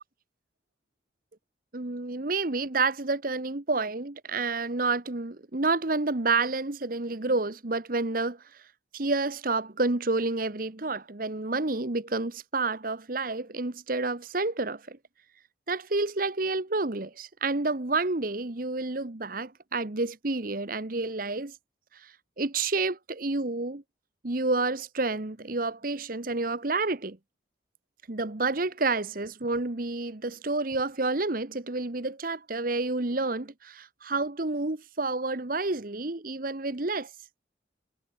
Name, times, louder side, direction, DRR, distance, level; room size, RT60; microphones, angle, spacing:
voice 1, 1.7-8.4 8.9-15.0 15.7-21.5 22.4-23.8 24.2-27.2 28.1-37.1, right 3 dB, 45° right, 1.2 m, -29 dB
head